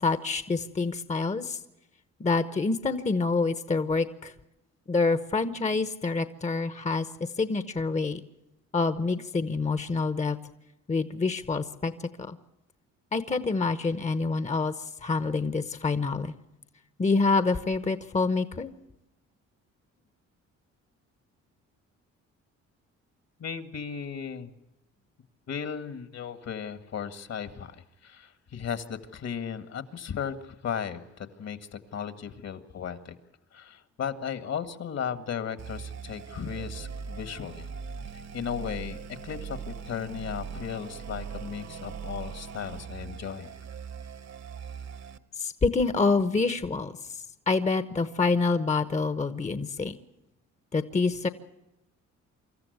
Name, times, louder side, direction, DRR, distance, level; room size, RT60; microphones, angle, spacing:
voice 1, 0.0-1.6 2.2-4.3 4.9-8.2 8.7-10.4 10.9-11.9 12.3-12.4 13.1-16.3 17.0-18.7 45.4-49.9 50.7-51.3, left 4 dB, 25° left, 12 dB, 1.0 m, -27 dB
voice 2, 23.4-24.5 25.5-27.8 28.0-33.2 33.5-37.7 38.3-43.5, left 7 dB, 60° left, 11 dB, 1.9 m, -36 dB
sound 1, 35.6-45.2, right 6 dB, 60° right, 1.4 m, -40 dB
25.5 x 14.0 x 8.0 m, 0.94 s
cardioid pair, 90°, 30 cm